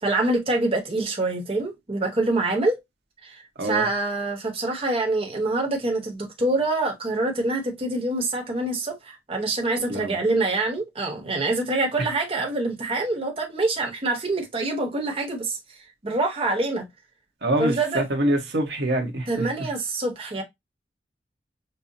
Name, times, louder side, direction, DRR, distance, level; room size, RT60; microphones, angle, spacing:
voice 1, 0.0-2.8 3.2-15.6 16.0-16.9 17.6-18.0 19.3-20.4, right 2 dB, 30° right, 0.9 m, -25 dB
voice 2, 17.4-19.7, right 1 dB, 65° right, 0.9 m, -25 dB
5.4 x 2.0 x 2.6 m
head